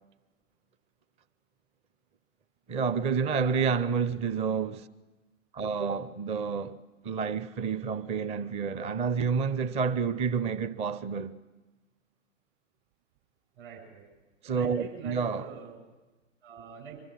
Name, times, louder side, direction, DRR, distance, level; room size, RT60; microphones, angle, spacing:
voice 1, 2.7-4.9 5.5-6.8 7.0-11.4 14.4-15.5, right 5 dB, 15° right, 0.6 m, -29 dB
voice 2, 3.3-4.2 13.6-14.1 14.5-15.8 16.4-17.0, right 6 dB, 50° right, 7.3 m, -45 dB
25.0 x 12.5 x 9.9 m
figure-of-eight pair, 110°, 38 cm